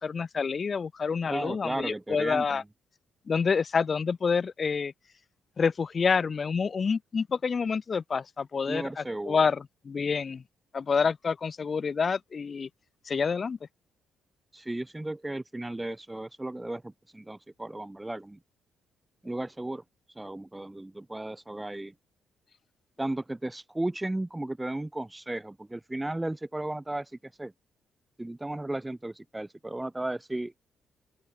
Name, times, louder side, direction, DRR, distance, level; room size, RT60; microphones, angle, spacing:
voice 1, 0.0-2.6 3.3-4.9 5.6-10.4 10.7-12.7 13.1-13.6, left 5 dB, 40° left, 2.1 m, -28 dB
voice 2, 1.3-2.6 8.7-9.4 14.5-18.4 19.2-21.9 23.0-27.5 28.2-30.5, right 1 dB, 10° right, 1.6 m, -35 dB
open air
cardioid pair, 90°, 0 cm